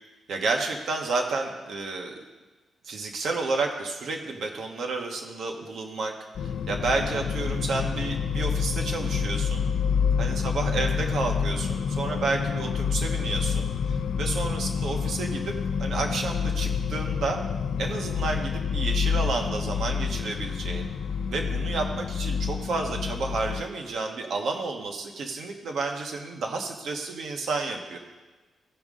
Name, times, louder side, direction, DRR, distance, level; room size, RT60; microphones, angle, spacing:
voice 1, 0.3-2.1 2.8-6.1 6.4-9.6 10.2-15.5 15.8-17.4 17.8-20.9 21.3-28.0, right 3 dB, 70° right, 2 dB, 1.2 m, -31 dB
sound 1, 6.4-23.6, left 6 dB, 75° left, 0.4 m, -28 dB
15.5 x 5.3 x 3.7 m, 1.2 s
wide cardioid pair, 145°, 0 cm